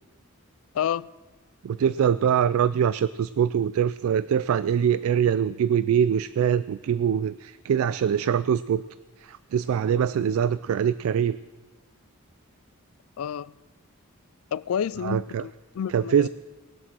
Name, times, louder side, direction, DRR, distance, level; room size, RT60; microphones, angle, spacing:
voice 1, 0.7-1.1 13.2-13.5 14.5-16.3, left 8 dB, 75° left, 0.3 m, -29 dB
voice 2, 1.6-8.8 9.2-11.4 15.0-15.4 15.9-16.3, right 8 dB, 75° right, 0.3 m, -23 dB
19.5 x 7.6 x 6.1 m
head